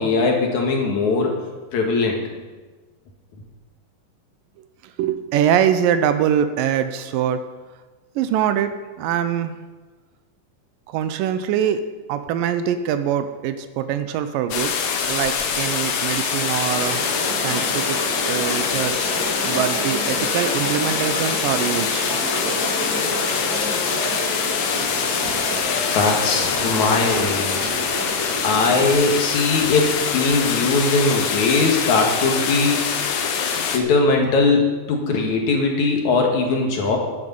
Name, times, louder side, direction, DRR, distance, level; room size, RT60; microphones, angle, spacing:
voice 1, 0.0-1.4 1.7-2.2 25.9-27.7 28.4-32.9 33.7-37.0, left 3 dB, 60° left, 1 dB, 2.8 m, -20 dB
voice 2, 5.0-7.4 8.2-9.5 10.9-11.8 12.1-14.7 15.1-17.0 17.4-18.0 18.3-19.2 19.4-22.1, right 9 dB, 80° right, 10 dB, 2.4 m, -23 dB
sound 1, 14.5-33.8, left 6 dB, 80° left, 2.8 m, -24 dB
sound 2, 16.7-28.9, right 1 dB, 35° right, 3.0 m, -30 dB
sound 3, 22.0-27.8, left 3 dB, 45° left, 4.2 m, -38 dB
11.5 x 10.5 x 5.5 m, 1.3 s
omnidirectional pair, 4.0 m